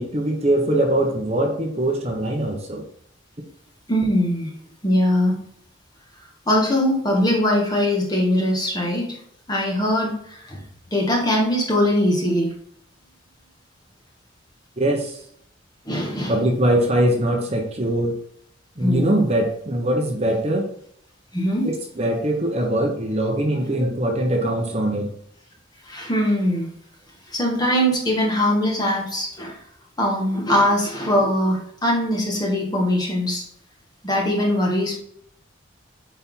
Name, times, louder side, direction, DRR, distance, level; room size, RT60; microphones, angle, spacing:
voice 1, 0.0-2.8 14.8-15.2 16.3-18.1 18.8-20.7 21.6-25.1, right 1 dB, 35° right, 1 dB, 1.2 m, -22 dB
voice 2, 3.9-4.5 4.8-5.4 6.5-9.1 9.5-10.6 10.9-12.5 15.9-16.4 18.8-19.2 21.3-21.7 25.9-26.7 27.3-29.6 30.0-33.4 34.0-35.0, left 1 dB, 20° left, -1 dB, 1.8 m, -21 dB
8.9 x 4.3 x 3.9 m, 0.67 s
head